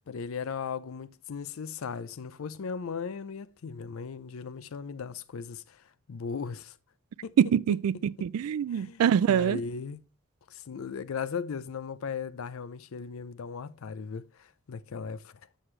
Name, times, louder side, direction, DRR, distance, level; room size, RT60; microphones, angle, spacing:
voice 1, 0.1-6.8 7.2-7.3 8.2-8.3 8.7-9.0 9.3-10.0 10.5-15.3, left 5 dB, 70° left, 0.4 m, -37 dB
voice 2, 7.4-9.6, right 8 dB, 80° right, 0.3 m, -24 dB
7.7 x 6.3 x 3.2 m
head